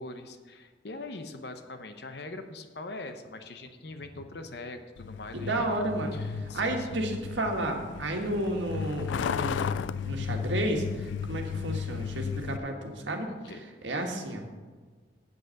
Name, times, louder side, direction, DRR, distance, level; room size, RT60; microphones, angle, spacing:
voice 1, 0.0-5.7 6.1-7.0 8.1-8.3 13.2-13.6, left 2 dB, 60° left, 7 dB, 0.8 m, -42 dB
Truck, 5.0-12.6, left 6 dB, 75° left, 0.3 m, -34 dB
voice 2, 5.3-13.3 13.8-14.4, right 1 dB, 75° right, 2 dB, 1.6 m, -32 dB
8.3 x 8.1 x 6.4 m, 1.5 s
head